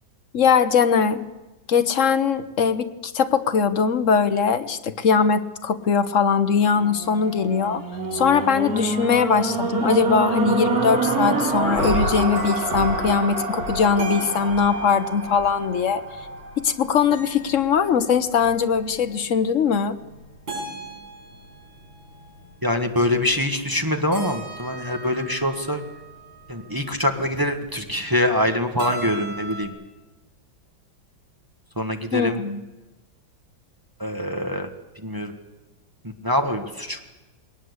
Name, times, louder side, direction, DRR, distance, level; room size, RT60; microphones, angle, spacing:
voice 1, 0.3-1.2 1.7-7.8 8.1-16.0 16.6-20.0 32.1-32.6, left 6 dB, 50° left, 11 dB, 1.1 m, -21 dB
sound 1, 6.7-17.0 17.6-17.7, right 3 dB, 45° right, 3.1 m, -26 dB
sound 2, 11.5-29.7, right 2 dB, 70° right, 6.4 m, -40 dB
voice 2, 22.6-25.8 26.5-29.7 31.8-32.4 34.0-34.7 35.0-35.3 36.2-37.0, left 1 dB, 10° right, 5 dB, 1.3 m, -24 dB
21.0 x 19.0 x 8.1 m, 1.1 s
omnidirectional pair, 2.1 m